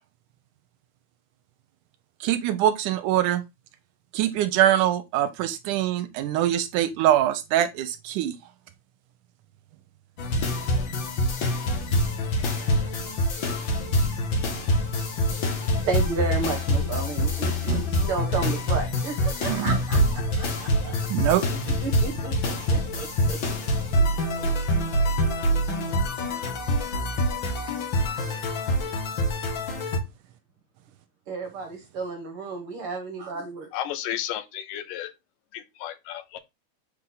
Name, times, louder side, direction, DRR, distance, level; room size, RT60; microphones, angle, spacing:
voice 1, 2.2-3.4 4.1-8.4 12.5-12.6 17.7-17.8 19.5-19.8 21.1-21.7, right 12 dB, 80° right, 2.0 m, -24 dB
sound 1, 10.2-30.0, left 1 dB, 50° left, 1.6 m, -25 dB
voice 2, 15.8-20.0 20.4-20.5 20.8-20.9 21.8-23.7 31.3-33.7, right 4 dB, 55° right, 1.7 m, -32 dB
voice 3, 33.7-35.1 35.5-36.4, left 11 dB, 80° left, 2.4 m, -33 dB
7.7 x 4.5 x 3.9 m
omnidirectional pair, 3.8 m